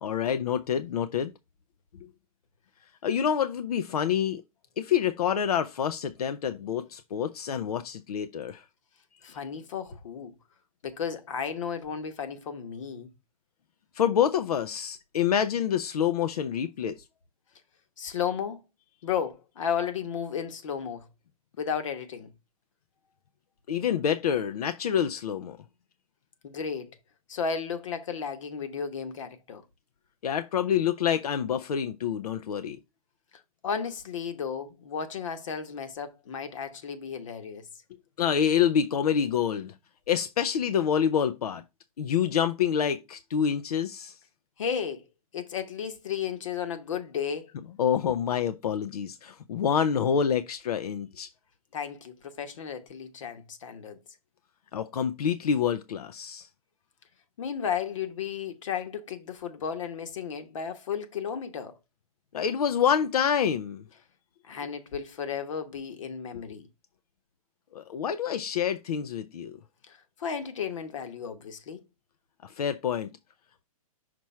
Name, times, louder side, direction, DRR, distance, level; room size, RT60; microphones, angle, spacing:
voice 1, 0.0-1.3 3.0-4.4 4.8-8.6 13.9-17.0 23.7-25.6 30.2-32.8 38.2-39.7 40.1-41.6 42.0-44.2 47.8-51.3 54.7-56.5 62.3-63.8 66.3-66.4 67.7-69.6 72.4-73.1, left 8 dB, 85° left, 0.6 m, -27 dB
voice 2, 9.2-10.3 10.8-13.1 18.0-18.6 19.0-21.1 21.6-22.3 26.4-27.0 27.3-29.6 33.6-37.7 44.6-45.0 45.3-47.5 51.7-54.0 57.4-61.7 64.4-66.7 69.9-71.8, left 7 dB, 55° left, 1.2 m, -34 dB
5.9 x 3.1 x 5.6 m
hypercardioid pair, 170°, 19 cm